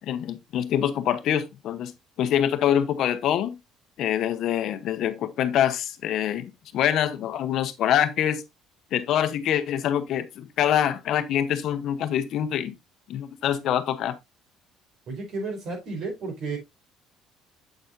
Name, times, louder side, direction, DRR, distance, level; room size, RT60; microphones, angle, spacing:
voice 1, 0.1-1.9 2.2-3.6 4.0-8.4 8.9-12.7 13.1-14.1, left 10 dB, 60° left, 0.9 m, -25 dB
voice 2, 15.1-16.6, right 3 dB, 60° right, 4.4 m, -32 dB
7.9 x 7.0 x 2.6 m
cardioid pair, 135°, 0 cm